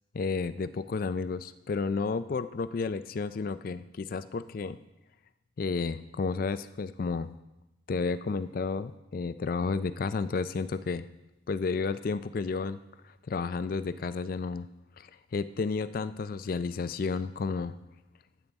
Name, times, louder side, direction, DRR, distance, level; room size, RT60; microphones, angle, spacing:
voice 1, 0.1-4.8 5.6-7.3 7.9-11.0 11.5-12.8 13.3-14.7 15.0-17.7, left 4 dB, 45° left, 14 dB, 0.3 m, -32 dB
12.5 x 8.2 x 3.5 m, 0.98 s
head